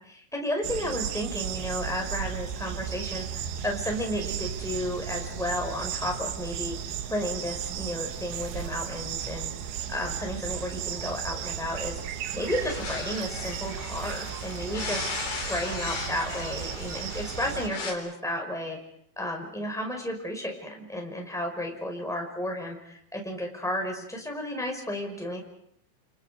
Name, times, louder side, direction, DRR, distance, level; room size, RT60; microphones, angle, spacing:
voice 1, 0.0-6.8 7.1-9.5 9.9-12.0 12.3-15.1 15.5-18.8 19.2-25.4, left 1 dB, ahead, 1 dB, 4.5 m, -33 dB
sound 1, 0.6-17.7, right 9 dB, 75° right, 3.4 m, -35 dB
sound 2, 12.5-17.9, left 4 dB, 45° left, 5.0 m, -37 dB
29.0 x 29.0 x 5.1 m, 0.70 s
omnidirectional pair, 5.5 m